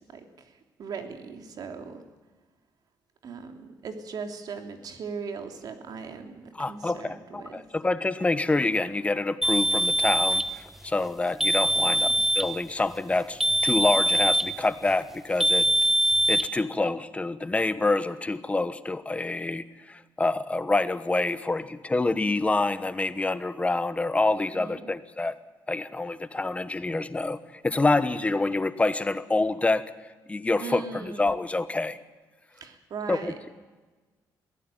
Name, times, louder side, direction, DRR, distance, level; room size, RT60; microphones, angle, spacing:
voice 1, 0.0-2.0 3.2-7.6 11.8-12.2 24.5-24.9 30.6-31.3 32.6-33.4, right 5 dB, 60° right, 5 dB, 3.0 m, -39 dB
voice 2, 6.6-12.1 12.3-15.7 16.3-25.4 25.7-27.4 27.6-29.9 30.3-32.0 33.1-33.5, left 2 dB, 15° left, 13 dB, 1.2 m, -27 dB
sound 1, 9.4-10.5 11.4-12.5 13.4-14.5 15.4-16.5, right 1 dB, 5° right, 1.1 m, -23 dB
22.0 x 16.0 x 9.2 m, 1.3 s
cardioid pair, 105°, 7 cm